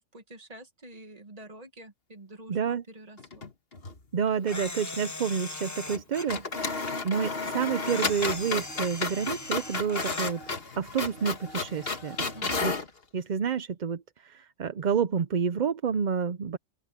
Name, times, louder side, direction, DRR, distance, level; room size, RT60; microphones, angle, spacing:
voice 1, 0.0-3.5 12.2-12.6, right 1 dB, 30° right, 1.6 m, -47 dB
voice 2, 2.5-2.8 4.1-10.4 10.8-12.2 12.6-12.7 13.1-16.6, right 7 dB, 45° right, 0.6 m, -29 dB
sound 1, 3.2-4.0 4.3-4.4 5.9-6.0 6.3-12.9, left 3 dB, 50° left, 1.9 m, -33 dB
Camera, 4.5-6.4 7.8-10.4, left 3 dB, 15° left, 0.7 m, -39 dB
open air
omnidirectional pair, 1.3 m